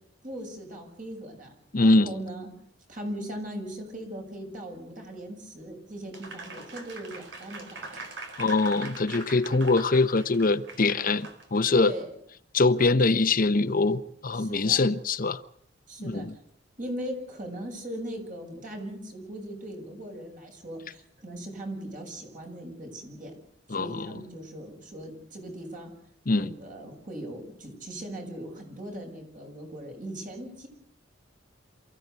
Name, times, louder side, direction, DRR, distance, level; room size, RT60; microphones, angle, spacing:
voice 1, 0.2-2.5 2.9-8.1 11.7-12.2 14.3-14.9 15.9-16.4 16.8-23.3 23.7-25.9 26.3-30.7, right 1 dB, 45° right, 7.1 m, -39 dB
voice 2, 1.7-2.1 8.4-11.9 12.5-15.4 16.1-16.3 23.7-24.1 26.3-26.5, left 3 dB, 50° left, 0.8 m, -23 dB
Applause, 6.1-11.7, right 3 dB, 70° right, 4.5 m, -42 dB
28.0 x 15.0 x 8.1 m
head